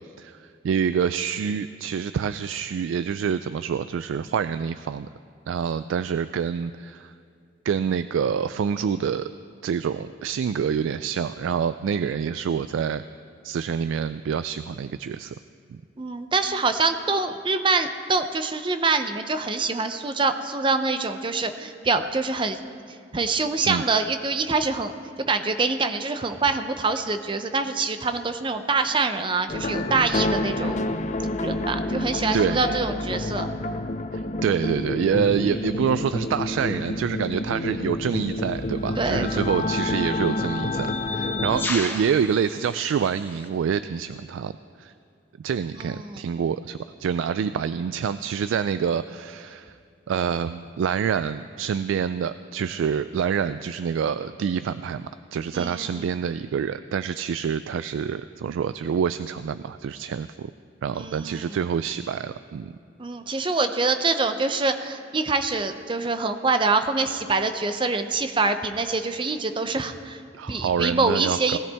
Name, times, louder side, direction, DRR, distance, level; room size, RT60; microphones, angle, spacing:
voice 1, 0.2-5.1 5.5-7.1 7.7-9.3 9.6-13.0 13.4-15.3 15.7-15.8 23.7-23.8 32.3-32.8 34.1-44.5 44.8-44.9 45.4-49.8 50.1-60.5 60.8-62.7 63.3-63.5 70.4-71.6, right 7 dB, 85° right, 13 dB, 0.3 m, -27 dB
voice 2, 16.0-22.6 23.1-24.9 25.3-30.8 31.4-33.5 39.0-39.4 45.8-46.2 55.5-55.9 61.0-61.5 63.0-70.2 70.5-71.6, right 3 dB, 25° right, 8 dB, 0.6 m, -25 dB
sound 1, 29.5-41.7, left 2 dB, 35° left, 0.5 m, -28 dB
sound 2, 38.1-38.3 39.3-43.5, left 2 dB, 10° left, 0.9 m, -35 dB
19.0 x 13.5 x 3.4 m, 2.4 s
head